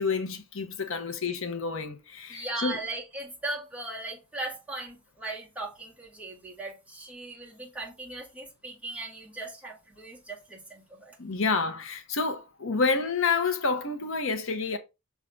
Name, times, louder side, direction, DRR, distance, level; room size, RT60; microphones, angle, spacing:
voice 1, 0.0-2.8 11.2-14.8, left 4 dB, 65° left, 1.0 m, -29 dB
voice 2, 2.3-11.2, right 2 dB, 5° right, 2.2 m, -38 dB
6.5 x 3.6 x 5.3 m
head